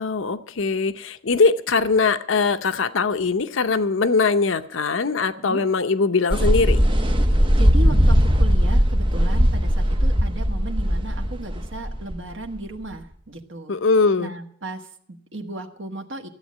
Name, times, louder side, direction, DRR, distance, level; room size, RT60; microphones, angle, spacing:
voice 1, 0.0-6.8 13.7-14.3, left 4 dB, 75° left, 11 dB, 0.7 m, -21 dB
sound 1, 6.3-12.9, equal, 25° right, 0.9 m, -19 dB
voice 2, 7.5-13.7 14.2-16.3, right 1 dB, 70° right, 4 dB, 1.4 m, -35 dB
14.0 x 8.1 x 8.4 m, 0.64 s
head